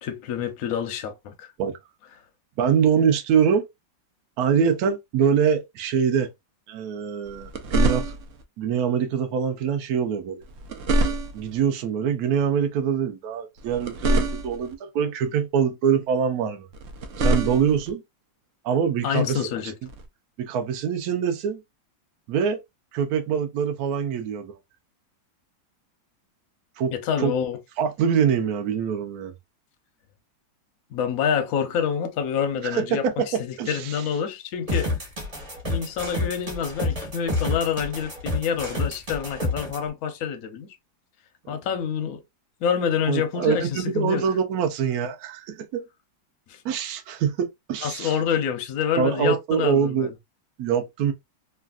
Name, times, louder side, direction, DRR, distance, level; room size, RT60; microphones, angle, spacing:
voice 1, 0.0-1.5 19.0-19.7 26.9-27.6 30.9-34.9 35.6-40.7 41.5-42.2 42.6-44.2 46.5-46.6 47.8-50.1, left 7 dB, 65° left, 1.0 m, -27 dB
voice 2, 2.6-3.7 4.4-6.3 6.7-8.2 8.6-10.4 11.3-16.7 17.2-18.0 18.6-19.4 20.4-21.6 22.3-22.6 22.9-24.6 26.8-26.9 27.2-27.3 27.8-29.3 32.6-34.0 41.4-41.6 43.1-45.9 46.6-48.1 49.0-50.1 50.6-51.1, right 7 dB, 65° right, 1.0 m, -24 dB
sound 1, 7.3-8.4 10.4-11.6 13.6-14.7 16.7-17.9 19.9-20.1, right 1 dB, 80° right, 0.7 m, -25 dB
sound 2, 34.7-39.8, left 2 dB, 25° right, 1.6 m, -28 dB
3.2 x 2.5 x 2.4 m
omnidirectional pair, 2.1 m